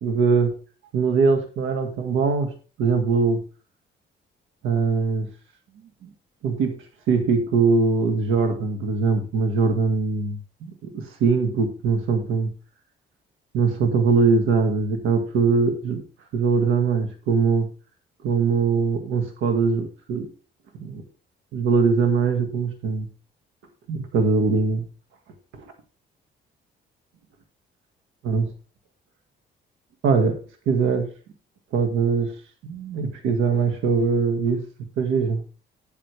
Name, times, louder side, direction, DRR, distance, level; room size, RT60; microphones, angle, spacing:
voice 1, 0.0-0.5 0.9-2.5 2.8-3.4 4.6-5.3 6.0-6.1 6.4-6.7 7.1-12.5 13.5-16.0 16.3-17.7 18.2-20.3 20.7-21.0 21.5-23.1 23.9-24.8 25.5-25.6 28.2-28.5 30.0-30.4 30.7-31.1 31.7-32.3 32.6-34.6 35.0-35.4, right 5 dB, 90° right, 6 dB, 1.9 m, -22 dB
10.0 x 8.6 x 3.4 m, 0.36 s
cardioid pair, 90°, 20 cm